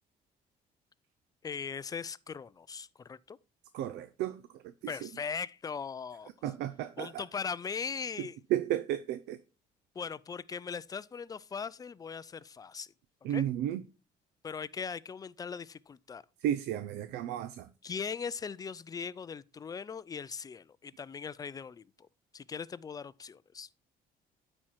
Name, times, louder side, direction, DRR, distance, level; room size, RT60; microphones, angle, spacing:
voice 1, 1.4-3.4 4.9-6.3 7.0-8.4 10.0-12.9 13.3-13.4 14.4-16.2 17.8-22.1 22.3-23.7, left 6 dB, 20° left, 0.3 m, -39 dB
voice 2, 3.7-5.0 6.4-7.2 8.5-9.4 13.2-13.8 16.4-17.7, right 12 dB, 85° right, 0.5 m, -33 dB
9.2 x 4.4 x 4.4 m
cardioid pair, 110°, 17 cm